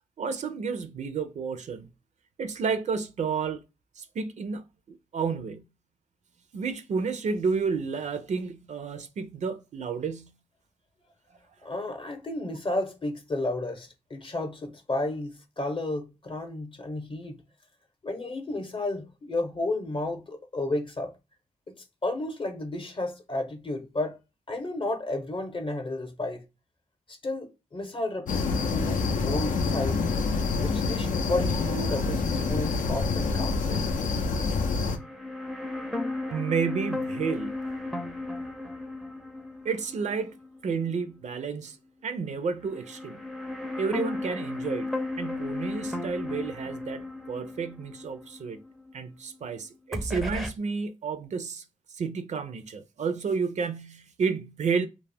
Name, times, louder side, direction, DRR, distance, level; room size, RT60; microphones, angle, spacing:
voice 1, 0.2-1.9 2.4-3.6 4.0-5.6 6.5-10.3 36.3-37.5 39.6-40.4 40.6-41.8 42.0-43.2 43.8-44.9 45.2-48.6 48.9-51.6 51.9-54.9, right 5 dB, 60° right, 0.4 m, -31 dB
voice 2, 11.6-17.4 18.0-21.2 21.7-24.2 24.5-26.4 27.1-30.1 30.6-33.8, left 2 dB, 40° left, 0.7 m, -32 dB
sound 1, 28.3-35.0, left 4 dB, 80° left, 0.4 m, -27 dB
sound 2, 34.9-41.1 41.4-41.5 42.6-49.5 49.9-50.5, left 2 dB, ahead, 0.5 m, -35 dB
2.3 x 2.0 x 3.3 m
cardioid pair, 55°, 14 cm